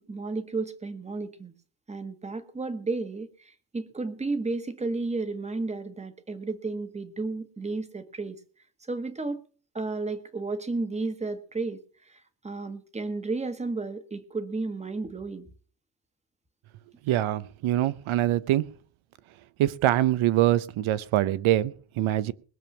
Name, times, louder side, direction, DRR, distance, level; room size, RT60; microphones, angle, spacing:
voice 1, 0.0-1.5 1.9-8.4 8.9-9.4 9.7-11.8 12.1-15.5, right 3 dB, 15° right, 11 dB, 1.2 m, -33 dB
voice 2, 17.1-18.7 19.6-22.3, right 13 dB, 90° right, 18 dB, 0.9 m, -24 dB
21.0 x 7.1 x 5.9 m, 0.42 s
cardioid pair, 175°, 47 cm